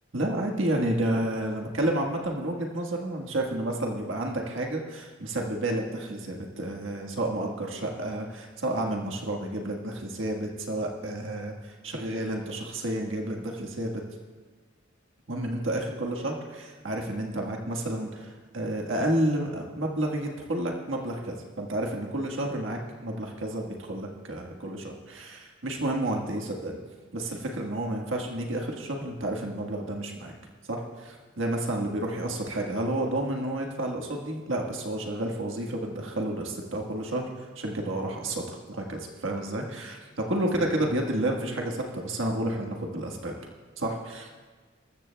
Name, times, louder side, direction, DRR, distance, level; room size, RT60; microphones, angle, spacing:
voice 1, 0.1-14.0 15.3-26.8 27.1-30.3 30.7-43.3 43.8-44.3, right 1 dB, 75° right, 1 dB, 1.5 m, -30 dB
21.0 x 14.0 x 2.3 m, 1.4 s
head